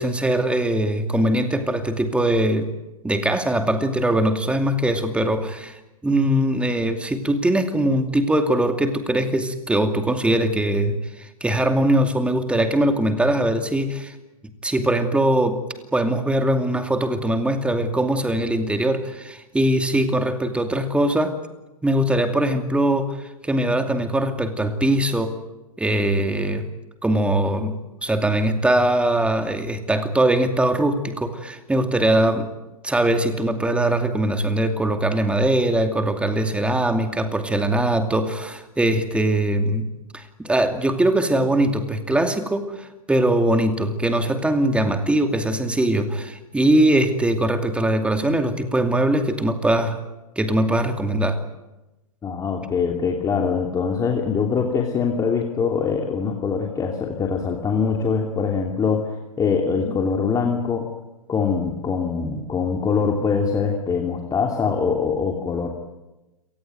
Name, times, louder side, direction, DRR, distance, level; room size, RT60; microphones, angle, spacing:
voice 1, 0.0-2.7 3.0-14.1 14.6-15.6 15.9-21.4 21.8-25.4 25.8-26.7 27.0-32.5 32.8-39.9 40.1-50.0 50.4-51.4, right 1 dB, 5° right, 7 dB, 2.6 m, -21 dB
voice 2, 52.2-59.1 59.4-60.9 61.3-65.7, left 5 dB, 20° left, 1 dB, 2.9 m, -23 dB
29.0 x 19.0 x 9.3 m, 1.0 s
hypercardioid pair, 115°, 19 cm